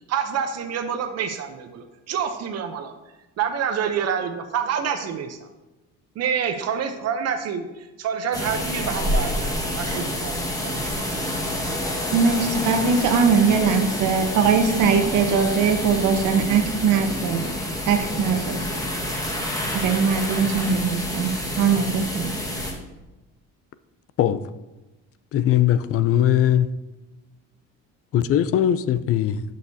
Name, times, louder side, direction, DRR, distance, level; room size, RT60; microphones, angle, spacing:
voice 1, 0.1-2.9 3.4-5.5 6.2-11.1, right 7 dB, 55° right, 0.7 m, -27 dB
sound 1, 8.3-22.7, left 1 dB, 10° left, 1.5 m, -28 dB
voice 2, 12.1-17.5 17.9-18.5 19.7-21.3 21.6-22.3, right 5 dB, 75° right, 1.1 m, -21 dB
voice 3, 25.3-26.7 28.1-29.4, left 11 dB, 50° left, 0.4 m, -20 dB
11.5 x 6.6 x 2.7 m
cardioid pair, 125°, 31 cm